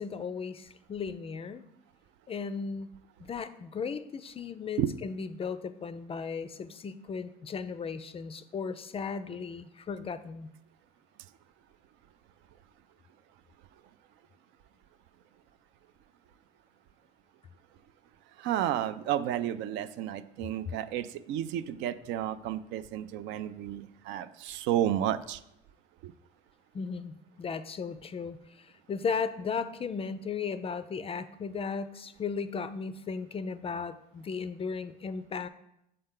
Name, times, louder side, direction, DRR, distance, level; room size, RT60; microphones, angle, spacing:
voice 1, 0.0-1.6 2.3-2.9 3.2-10.5 26.7-35.5, left 5 dB, 25° left, 13 dB, 0.4 m, -36 dB
voice 2, 18.4-25.4 26.0-26.1, right 11 dB, 60° right, 13 dB, 0.4 m, -32 dB
6.6 x 4.3 x 3.7 m, 0.79 s
hypercardioid pair, 65°, 21 cm